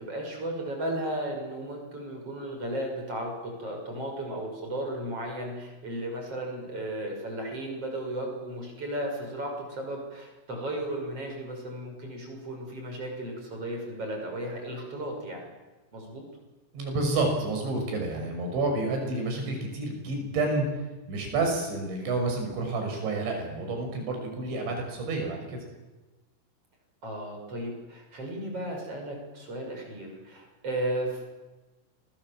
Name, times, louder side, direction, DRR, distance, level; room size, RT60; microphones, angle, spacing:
voice 1, 0.0-15.4 15.9-16.3 27.0-31.2, right 1 dB, 30° right, 2 dB, 7.0 m, -35 dB
voice 2, 16.7-20.7 21.1-25.6, right 3 dB, 65° right, 3 dB, 8.1 m, -29 dB
29.0 x 24.0 x 7.7 m, 1.2 s
omnidirectional pair, 5.9 m